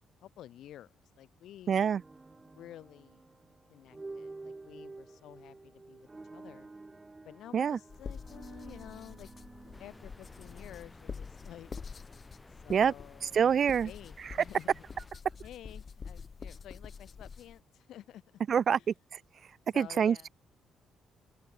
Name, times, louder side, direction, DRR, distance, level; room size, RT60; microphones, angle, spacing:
voice 1, 0.2-1.8 2.4-3.3 3.7-6.7 7.2-9.3 9.8-11.7 12.5-14.8 15.4-18.2 18.8-18.9 19.7-20.3, left 12 dB, 75° left, 1.6 m, -51 dB
sound 1, 1.7-11.8, right 3 dB, 20° right, 1.8 m, -50 dB
voice 2, 1.7-2.0 7.5-7.8 12.7-12.9 13.3-13.9 18.5-18.8 19.8-20.3, right 7 dB, 55° right, 0.3 m, -25 dB
sound 2, 7.9-17.6, left 5 dB, 40° left, 1.1 m, -47 dB
sound 3, 9.7-15.1, left 2 dB, 15° left, 6.9 m, -56 dB
open air
cardioid pair, 90°, 0 cm